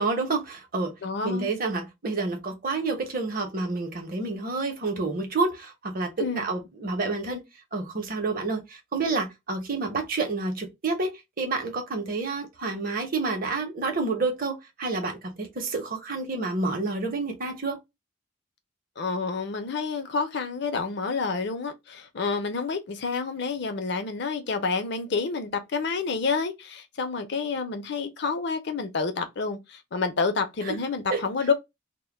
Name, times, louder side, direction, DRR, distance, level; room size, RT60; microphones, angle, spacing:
voice 1, 0.0-0.9 1.2-7.4 7.7-17.8 30.7-30.8 31.1-31.2, right 3 dB, 45° right, 0.7 m, -29 dB
voice 2, 1.0-1.5 6.2-6.4 19.0-31.5, left 4 dB, 60° left, 0.6 m, -29 dB
2.2 x 2.1 x 3.2 m
head